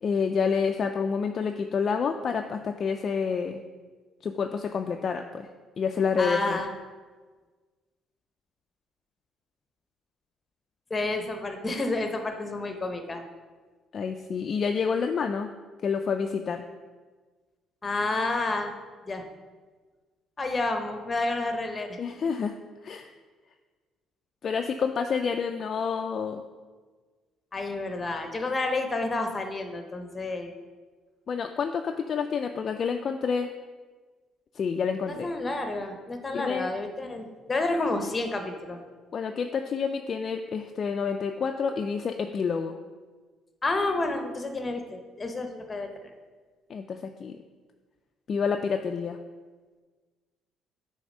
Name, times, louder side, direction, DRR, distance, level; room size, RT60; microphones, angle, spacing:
voice 1, 0.0-3.6 4.2-5.5 5.8-6.6 13.9-15.5 15.8-16.6 22.0-22.6 22.8-23.1 24.4-26.4 31.3-33.5 34.5-35.3 36.3-36.7 39.1-42.8 46.7-47.4 48.3-49.2, left 6 dB, 40° left, 4 dB, 0.3 m, -28 dB
voice 2, 6.2-6.7 10.9-13.2 17.8-18.7 19.1-19.2 20.4-22.0 27.5-30.6 35.1-38.8 43.6-46.1, left 2 dB, 20° left, 5 dB, 0.8 m, -30 dB
8.5 x 3.4 x 5.3 m, 1.4 s
cardioid pair, 135°, 0 cm